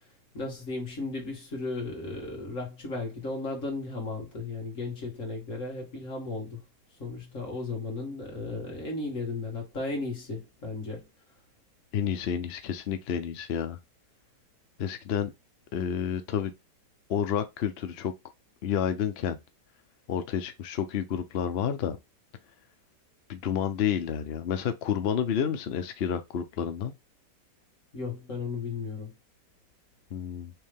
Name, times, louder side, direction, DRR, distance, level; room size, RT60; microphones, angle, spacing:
voice 1, 0.3-6.6 7.0-11.0 27.9-29.1, left 3 dB, 45° left, 2.1 m, -35 dB
voice 2, 11.9-13.8 14.8-15.3 15.7-16.5 17.1-18.1 18.6-19.4 20.1-22.0 23.3-26.9 30.1-30.5, left 8 dB, 70° left, 0.6 m, -30 dB
4.6 x 3.2 x 3.5 m
omnidirectional pair, 1.9 m